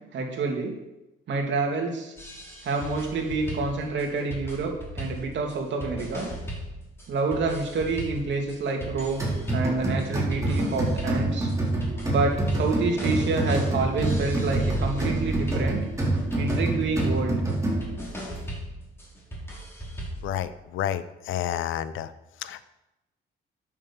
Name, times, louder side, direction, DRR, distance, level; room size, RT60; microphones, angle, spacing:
voice 1, 0.1-0.7 1.3-2.1 2.6-6.3 7.1-11.5 12.1-15.8 16.4-17.4, right 3 dB, 65° right, 2 dB, 2.7 m, -28 dB
sound 1, 2.2-20.3, equal, 10° left, 4.8 m, -38 dB
sound 2, 9.2-18.1, right 2 dB, 15° right, 4.4 m, -27 dB
sound 3, 14.4-16.8, equal, 35° right, 2.8 m, -37 dB
voice 2, 20.2-22.1 22.4-22.7, left 11 dB, 85° left, 14 dB, 0.7 m, -30 dB
9.1 x 7.2 x 7.1 m, 0.94 s
cardioid pair, 90°, 20 cm